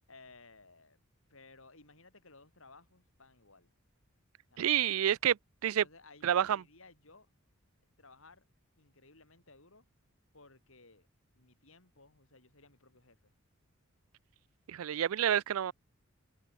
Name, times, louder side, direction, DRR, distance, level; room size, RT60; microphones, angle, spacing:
voice 1, 0.1-1.0 1.3-3.7 4.5-4.9 5.8-7.3 8.0-8.4 8.8-9.9 10.3-11.1 11.3-13.3, left 3 dB, 65° left, 6.0 m, -58 dB
voice 2, 4.6-5.8 6.2-6.6 14.7-15.7, right 10 dB, 75° right, 0.4 m, -29 dB
head